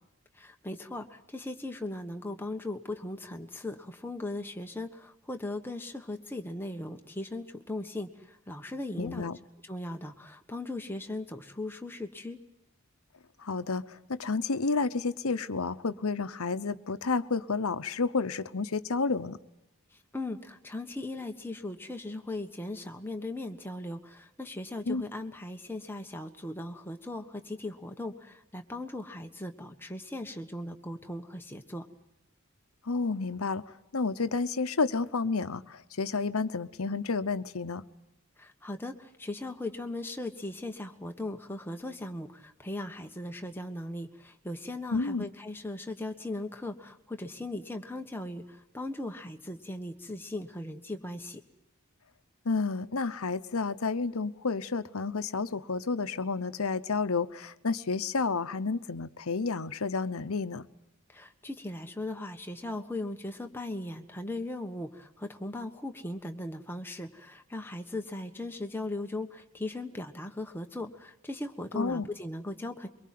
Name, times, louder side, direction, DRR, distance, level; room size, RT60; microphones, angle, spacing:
voice 1, 0.3-9.3 9.6-12.4 19.9-31.9 38.4-51.4 61.1-72.9, left 2 dB, 10° left, 4 dB, 1.4 m, -38 dB
voice 2, 9.0-9.4 13.4-19.4 24.9-25.0 32.8-33.6 33.9-37.8 44.9-45.3 52.4-60.7 71.7-72.1, left 4 dB, 75° left, 13 dB, 0.9 m, -30 dB
23.5 x 23.0 x 7.6 m, 0.90 s
head